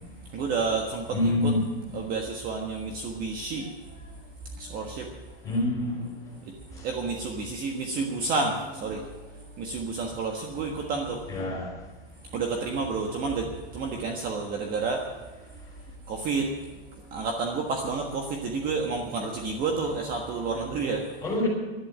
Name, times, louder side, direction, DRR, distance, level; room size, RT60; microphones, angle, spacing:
voice 1, 0.3-1.5 1.9-4.2 4.5-5.4 6.4-11.4 12.2-15.3 16.1-16.5 17.0-21.1, right 4 dB, 30° right, 2 dB, 1.4 m, -30 dB
voice 2, 1.1-1.7 5.4-6.1 6.8-6.9 11.3-11.7 21.2-21.5, left 2 dB, 10° left, -1 dB, 5.0 m, -26 dB
11.5 x 9.9 x 9.9 m, 1.3 s
supercardioid pair, 150°, 30 cm